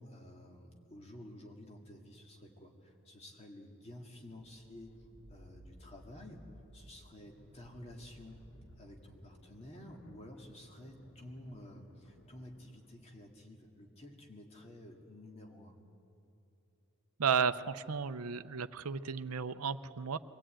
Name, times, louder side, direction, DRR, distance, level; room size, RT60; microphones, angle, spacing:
voice 1, 0.0-6.4 6.7-8.5 8.8-15.8, left 1 dB, 30° left, 1 dB, 2.2 m, -52 dB
sound 1, 4.2-12.9, equal, 85° left, 2.8 m, -59 dB
voice 2, 17.2-20.2, right 6 dB, 90° right, 13 dB, 0.6 m, -33 dB
23.5 x 16.5 x 8.9 m, 2.9 s
head